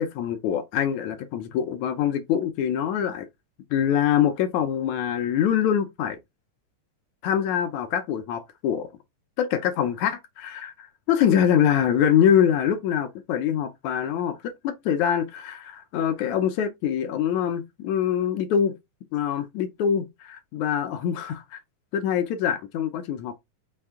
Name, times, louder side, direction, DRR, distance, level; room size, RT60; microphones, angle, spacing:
voice 1, 0.0-3.3 3.7-6.2 7.2-8.9 9.4-18.8 19.1-21.6 21.9-23.3, left 9 dB, 75° left, 1.8 m, -24 dB
5.6 x 2.7 x 3.5 m
omnidirectional pair, 3.7 m